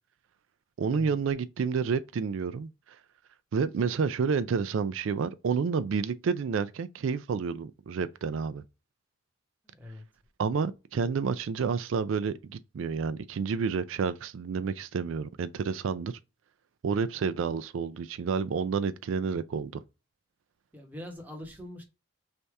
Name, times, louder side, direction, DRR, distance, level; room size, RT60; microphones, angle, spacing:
voice 1, 0.8-2.7 3.5-8.6 10.4-16.1 16.8-19.8, right 5 dB, 85° right, 0.4 m, -29 dB
voice 2, 9.6-10.1 20.7-21.8, left 1 dB, 10° right, 0.9 m, -43 dB
3.3 x 2.7 x 4.6 m
head